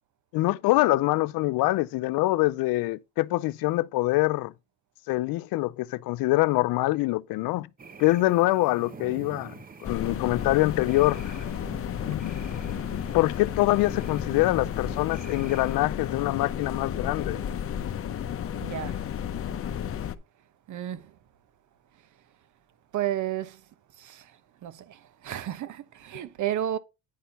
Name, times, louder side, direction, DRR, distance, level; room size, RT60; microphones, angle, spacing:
voice 1, 0.3-4.5 5.1-7.7 8.0-9.5 9.8-11.3 12.0-12.4 13.1-17.4, left 19 dB, 80° left, 0.5 m, -24 dB
sound 1, 7.8-15.8, right 5 dB, 25° right, 0.9 m, -46 dB
sound 2, 9.8-20.2, left 9 dB, 40° left, 0.7 m, -32 dB
voice 2, 18.6-19.0 20.7-21.0 22.9-23.6 24.0-24.2 24.6-26.8, right 11 dB, 55° right, 1.0 m, -32 dB
10.5 x 4.4 x 5.3 m
cardioid pair, 125°, 35 cm